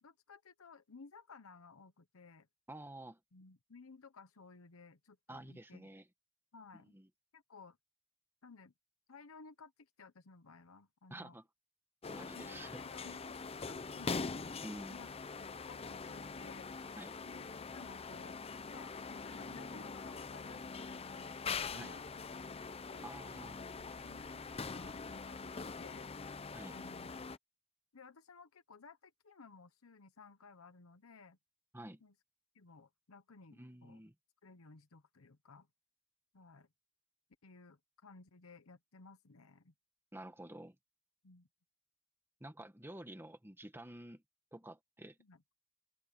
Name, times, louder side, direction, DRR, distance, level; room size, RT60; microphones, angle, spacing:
voice 1, 0.0-2.5 3.3-5.9 6.5-6.9 7.3-7.8 8.4-8.7 9.1-11.4 12.2-14.5 14.9-15.1 15.4-16.7 17.2-18.4 18.7-22.0 22.9-23.5 23.8-26.1 26.7-27.2 27.9-31.4 32.0-32.1 32.5-34.0 34.4-35.7 36.3-36.7 37.4-39.7 41.2-41.5 45.2-45.4, left 4 dB, 85° left, 1.0 m, -57 dB
voice 2, 2.7-3.2 5.3-6.1 6.9-7.1 11.1-11.4 12.1-13.1 14.6-15.0 17.0-17.1 21.7-22.0 23.0-23.6 26.5-26.8 31.7-32.0 33.5-34.1 40.1-40.8 42.4-44.2 44.5-45.2, right 1 dB, 10° right, 1.6 m, -50 dB
sound 1, 12.0-27.4, left 4 dB, 30° left, 0.6 m, -43 dB
open air
head